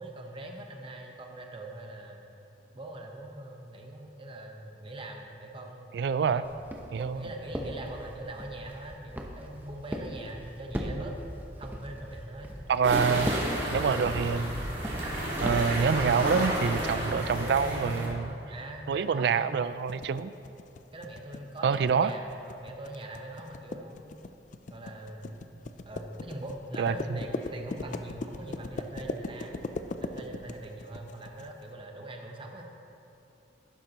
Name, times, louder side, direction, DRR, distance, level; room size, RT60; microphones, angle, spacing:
voice 1, 0.0-2.2 2.7-6.5 7.0-11.1 11.6-12.5 17.9-19.6 20.9-24.1 24.7-29.5 30.0-32.6, right 1 dB, 30° right, 2 dB, 1.0 m, -42 dB
voice 2, 5.9-6.4 6.9-7.3 12.7-13.3 13.7-14.5 15.4-18.3 18.9-20.3 21.6-22.1 26.8-27.2, right 6 dB, 65° right, 14 dB, 0.3 m, -26 dB
Walk footsteps, 6.4-15.8, equal, 10° right, 0.7 m, -39 dB
sound 1, 12.8-18.1, equal, 85° right, 2.5 m, -31 dB
sound 2, 19.9-31.5, left 3 dB, 45° left, 0.4 m, -39 dB
11.5 x 10.5 x 3.0 m, 2.8 s
head